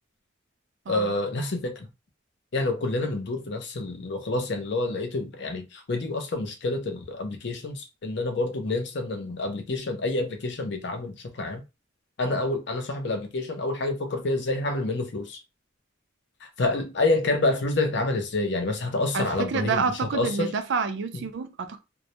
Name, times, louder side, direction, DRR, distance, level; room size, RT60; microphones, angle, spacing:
voice 1, 0.9-1.9 2.5-11.6 12.2-15.4 16.4-20.5 21.1-21.2, left 2 dB, 60° left, 0.5 m, -28 dB
voice 2, 19.1-21.8, right 5 dB, 60° right, 0.4 m, -28 dB
2.2 x 2.0 x 2.8 m
head